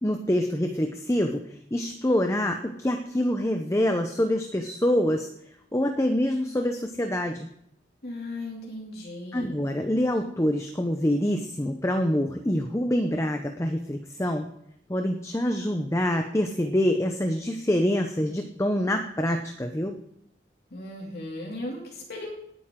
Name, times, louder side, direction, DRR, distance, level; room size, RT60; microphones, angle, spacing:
voice 1, 0.0-1.4 1.7-5.3 5.7-7.5 9.3-14.5 14.9-19.9, left 1 dB, 15° left, 5 dB, 0.7 m, -26 dB
voice 2, 8.0-9.6 20.7-22.3, left 1 dB, 60° left, -3 dB, 2.7 m, -36 dB
19.0 x 9.2 x 3.7 m, 0.75 s
head